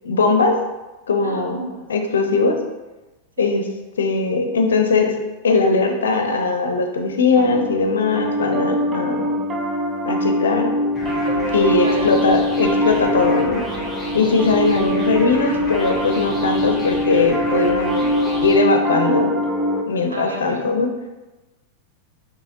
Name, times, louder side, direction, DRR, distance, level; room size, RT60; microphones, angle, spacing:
voice 1, 0.0-0.6 1.1-1.6 1.9-2.6 3.4-3.6 4.0-5.1 5.4-9.4 10.0-10.7 11.5-13.6 14.1-18.1 18.4-19.3 19.9-20.9, left 4 dB, 65° left, 4 dB, 0.6 m, -19 dB
voice 2, 1.2-1.9 3.4-3.5 11.8-12.2 20.1-20.7, right 1 dB, 75° right, 1 dB, 0.7 m, -31 dB
Piano, 7.4-19.8, equal, 25° right, 0.5 m, -22 dB
sound 1, 10.9-18.6, left 1 dB, 5° left, 1.2 m, -33 dB
6.3 x 2.9 x 2.8 m, 1.1 s
figure-of-eight pair, 90°, 0 cm